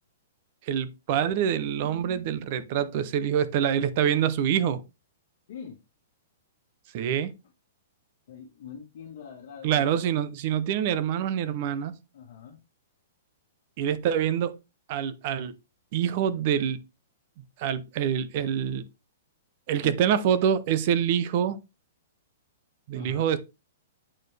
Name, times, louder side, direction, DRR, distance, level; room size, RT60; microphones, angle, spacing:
voice 1, 0.6-4.8 6.9-7.3 9.6-11.9 13.8-14.5 14.9-15.5 15.9-16.8 17.6-18.8 19.7-21.6 22.9-23.4, right 9 dB, 35° right, 0.6 m, -26 dB
voice 2, 5.5-5.8 8.3-10.1 12.1-12.6 19.8-20.0 22.9-23.3, left 7 dB, 55° left, 1.6 m, -43 dB
8.7 x 4.3 x 3.3 m
hypercardioid pair, 175°, 0 cm